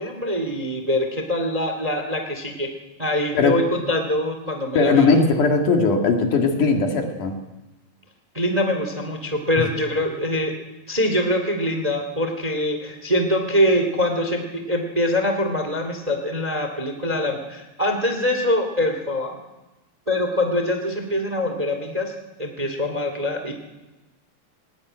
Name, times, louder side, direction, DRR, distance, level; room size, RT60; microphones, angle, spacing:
voice 1, 0.0-2.7 3.0-5.1 8.3-10.5 10.9-19.4 20.1-22.1 22.4-23.5, left 1 dB, 15° right, 5 dB, 1.8 m, -24 dB
voice 2, 4.7-7.4 9.6-9.7, left 4 dB, 65° left, 3 dB, 3.4 m, -19 dB
19.5 x 19.0 x 9.2 m, 1.1 s
omnidirectional pair, 4.1 m